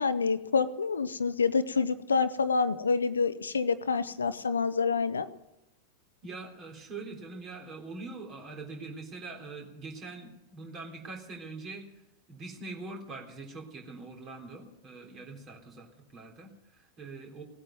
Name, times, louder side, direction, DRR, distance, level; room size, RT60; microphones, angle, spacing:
voice 1, 0.0-5.3, left 5 dB, 75° left, 13 dB, 0.8 m, -27 dB
voice 2, 6.2-11.9 12.3-17.4, right 3 dB, 30° right, 2 dB, 3.6 m, -43 dB
18.0 x 8.7 x 9.2 m, 0.87 s
figure-of-eight pair, 90°, 0 cm